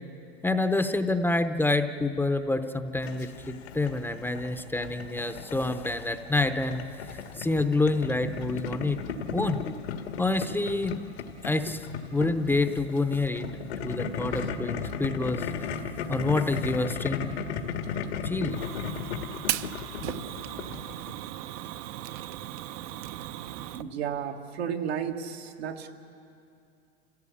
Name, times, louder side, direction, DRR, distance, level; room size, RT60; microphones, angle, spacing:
voice 1, 0.4-6.8 7.4-9.0 9.3-9.6 10.2-11.0 11.4-11.8 12.1-15.5 16.1-17.3 18.2-18.6, left 2 dB, 5° left, 8 dB, 0.7 m, -27 dB
Boiling, 3.0-21.1, left 6 dB, 85° left, 1.9 m, -36 dB
Fire, 18.5-23.8, right 13 dB, 45° right, 0.6 m, -37 dB
voice 2, 23.7-25.9, right 8 dB, 85° right, 2 dB, 1.8 m, -33 dB
28.5 x 16.5 x 8.6 m, 2.5 s
supercardioid pair, 120°, 31 cm